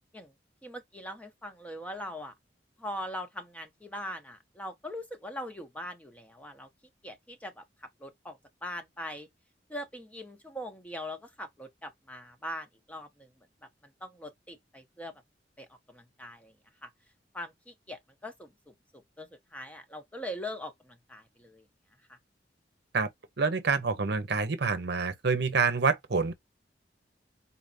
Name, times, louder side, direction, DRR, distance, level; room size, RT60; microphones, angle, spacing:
voice 1, 0.6-2.3 2.8-6.7 7.0-9.3 9.7-13.3 14.0-15.2 15.6-16.5 16.8-16.9 17.3-21.6 22.1-22.2, left 1 dB, 10° left, 0.8 m, -41 dB
voice 2, 23.4-26.3, right 4 dB, 65° right, 0.8 m, -27 dB
4.2 x 3.3 x 2.7 m
head